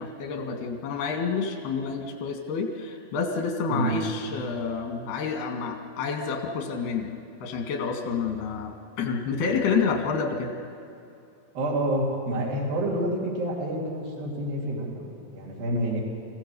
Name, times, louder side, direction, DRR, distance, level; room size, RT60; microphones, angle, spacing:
voice 1, 0.0-7.1 7.4-10.5, left 5 dB, 90° left, 3 dB, 3.8 m, -29 dB
voice 2, 11.5-16.0, right 1 dB, 70° right, -3 dB, 5.0 m, -28 dB
27.5 x 15.5 x 6.8 m, 2.6 s
omnidirectional pair, 4.4 m